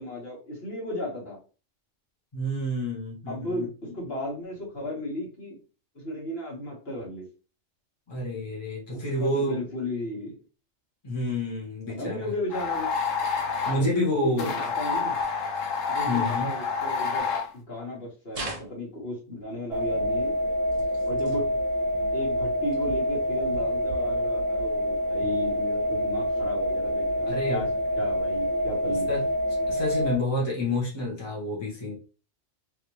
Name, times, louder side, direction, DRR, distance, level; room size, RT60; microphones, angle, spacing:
voice 1, 0.0-1.4 3.3-5.6 5.9-7.3 8.9-10.4 12.0-12.9 13.7-15.2 15.9-17.3 17.5-20.4 21.0-21.5 22.1-27.7 28.0-29.1, left 1 dB, 50° left, -5 dB, 1.7 m, -34 dB
voice 2, 2.3-3.9 8.1-9.6 11.0-12.3 13.6-14.6 16.0-16.5 21.1-21.4 27.3-27.6 29.1-29.3 29.7-32.0, left 1 dB, 20° left, -5 dB, 1.2 m, -29 dB
sound 1, 12.5-13.8 14.4-17.5, left 5 dB, 85° left, 1.1 m, -28 dB
sound 2, 18.3-19.2 20.7-21.4 22.7-22.8 23.7-23.8, right 2 dB, 35° right, 0.8 m, -39 dB
sound 3, 19.7-30.2, equal, 80° right, 0.9 m, -27 dB
3.2 x 2.8 x 3.0 m, 0.34 s
omnidirectional pair, 1.3 m